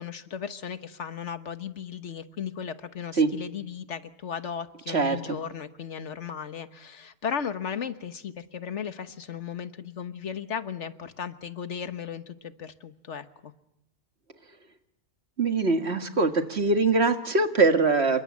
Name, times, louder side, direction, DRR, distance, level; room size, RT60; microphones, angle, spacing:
voice 1, 0.0-13.5, left 7 dB, 85° left, 11 dB, 1.6 m, -36 dB
voice 2, 4.9-5.4 15.4-18.2, right 3 dB, 65° right, 7 dB, 2.1 m, -23 dB
28.5 x 23.0 x 8.5 m, 0.82 s
omnidirectional pair, 1.2 m